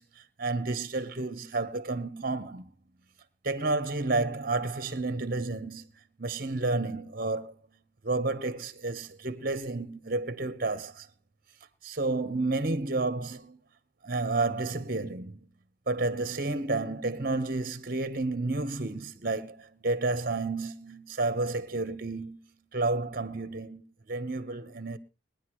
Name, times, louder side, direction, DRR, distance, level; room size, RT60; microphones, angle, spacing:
voice 1, 0.0-2.7 3.4-5.8 6.2-7.5 8.0-11.1 11.8-13.6 14.0-15.4 15.9-22.4 22.7-23.8 24.1-25.0, right 3 dB, 50° right, 1.1 m, -31 dB
21.0 x 10.5 x 3.1 m
head